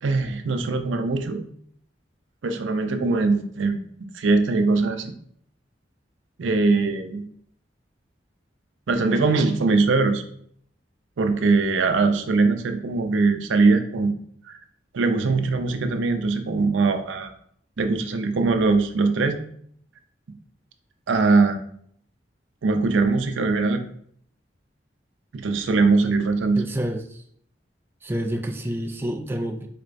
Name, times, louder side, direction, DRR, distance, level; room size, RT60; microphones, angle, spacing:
voice 1, 0.0-1.4 2.4-3.8 4.1-5.1 6.4-7.2 8.9-10.2 11.2-14.1 14.5-14.6 14.9-17.3 17.8-19.4 21.1-21.6 22.6-23.8 25.3-26.6, right 3 dB, 85° right, 7 dB, 0.5 m, -21 dB
voice 2, 26.6-27.2 28.0-29.7, equal, 10° right, 3 dB, 0.3 m, -28 dB
4.3 x 3.2 x 2.5 m, 0.63 s
head